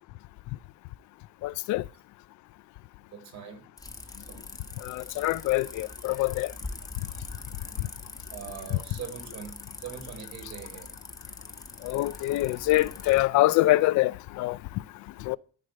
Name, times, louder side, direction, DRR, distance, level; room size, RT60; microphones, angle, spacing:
voice 1, 1.4-1.8 4.8-6.5 8.7-8.8 11.8-14.6 15.2-15.4, left 18 dB, 75° left, 0.5 m, -25 dB
voice 2, 3.1-3.7 4.3-4.4 8.3-10.9 13.1-13.2, right 7 dB, 65° right, 3.8 m, -42 dB
sound 1, 3.8-13.2, left 3 dB, 10° left, 1.0 m, -43 dB
13.5 x 4.9 x 7.6 m
cardioid pair, 145°, 30 cm